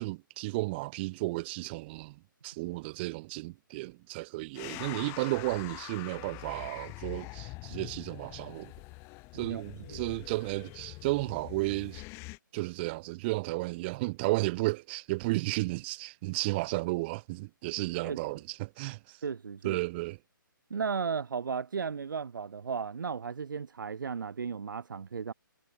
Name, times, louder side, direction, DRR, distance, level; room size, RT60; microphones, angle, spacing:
voice 1, 0.0-8.7 9.3-12.0 12.5-19.2 19.6-20.2, right 22 dB, 30° right, 4.7 m, -33 dB
sound 1, 4.6-12.4, left 25 dB, 20° left, 2.0 m, -44 dB
voice 2, 19.2-19.8 20.7-25.3, right 6 dB, 65° right, 3.3 m, -35 dB
figure-of-eight pair, 145°, 11 cm